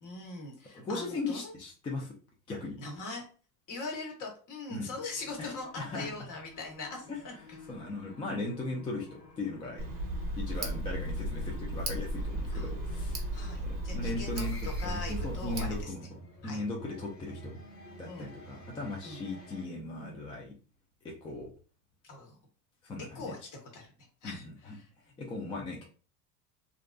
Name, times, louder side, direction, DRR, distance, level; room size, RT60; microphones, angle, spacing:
voice 1, 0.0-1.5 2.8-3.2 3.7-5.7 5.9-7.3 12.5-12.7 13.3-16.1 16.4-16.6 18.1-18.3 19.0-19.2 22.0-22.4 23.1-23.9 24.2-24.9, left 3 dB, 45° left, 1 dB, 1.1 m, -41 dB
voice 2, 0.7-2.1 2.5-2.8 4.7-4.9 5.4-6.1 7.1-7.2 7.7-9.8 10.4-13.3 13.6-14.6 14.8-16.0 16.4-17.6 18.0-20.5 21.0-21.5 22.8-23.3 24.2-24.7 25.2-25.8, left 2 dB, 15° left, -1 dB, 0.3 m, -38 dB
sound 1, 5.1-19.6, equal, 80° left, 0.9 m, -49 dB
Tick, 9.8-15.8, right 1 dB, 30° right, 0.7 m, -35 dB
2.5 x 2.2 x 2.3 m, 0.37 s
hypercardioid pair, 90°, 45 cm